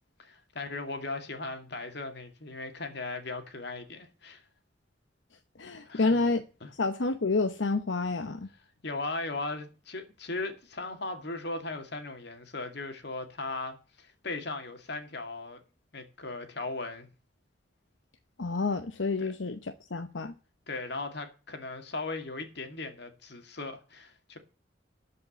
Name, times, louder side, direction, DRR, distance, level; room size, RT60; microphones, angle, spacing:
voice 1, 0.2-4.4 5.9-6.2 6.6-6.7 8.8-15.6 15.9-17.1 19.2-19.3 20.7-24.4, left 3 dB, 65° left, 2.3 m, -38 dB
voice 2, 5.6-6.4 6.8-8.5 18.4-20.3, left 3 dB, 85° left, 0.9 m, -29 dB
12.5 x 5.4 x 7.9 m
head